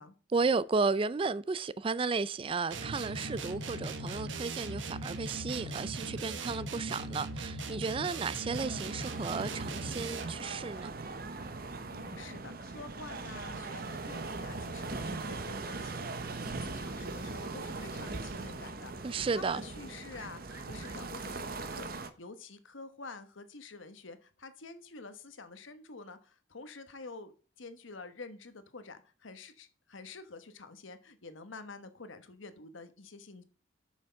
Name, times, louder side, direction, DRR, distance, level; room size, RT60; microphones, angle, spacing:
voice 1, 0.3-10.9 19.0-19.6, right 4 dB, 30° right, 0.3 m, -33 dB
sound 1, 2.7-10.5, right 2 dB, 75° right, 1.0 m, -39 dB
Fowl, 7.6-7.7 8.1-8.2 9.0-9.5 9.9-10.1 10.4-10.5 10.7-10.9 11.3-11.5 12.2-12.3 13.2-13.3 13.6-13.7 14.0-14.1 14.4-14.5 14.9-15.1 15.6-15.8 16.2-16.3 16.9-17.5 17.7-17.9 18.4-18.5 18.8-18.9 20.1-21.3, equal, 10° right, 1.5 m, -58 dB
sound 2, 8.5-22.1, right 3 dB, 50° right, 0.9 m, -40 dB
voice 2, 11.8-27.3 27.6-33.4, left 3 dB, 85° left, 1.2 m, -48 dB
7.9 x 6.4 x 5.7 m
head